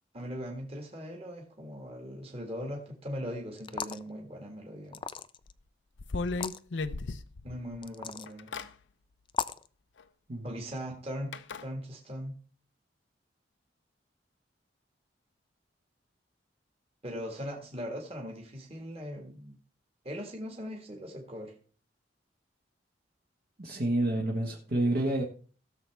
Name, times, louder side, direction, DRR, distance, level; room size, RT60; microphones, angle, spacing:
voice 1, 0.1-5.0 7.4-8.5 10.4-11.3 11.6-12.3 17.0-19.6 20.0-21.5, equal, 35° right, 1 dB, 1.8 m, -39 dB
sound 1, 3.6-4.1 4.9-5.5 6.3-6.6 7.8-8.3 9.3-9.7, left 6 dB, 25° left, 0.4 m, -35 dB
sound 2, 5.5-5.6 6.0-7.8 8.3-8.7 10.0-10.1 11.3-11.6, left 3 dB, 85° left, 0.6 m, -35 dB
voice 2, 23.6-25.2, right 1 dB, 60° right, -2 dB, 1.4 m, -28 dB
17.0 x 6.9 x 3.5 m, 0.42 s
head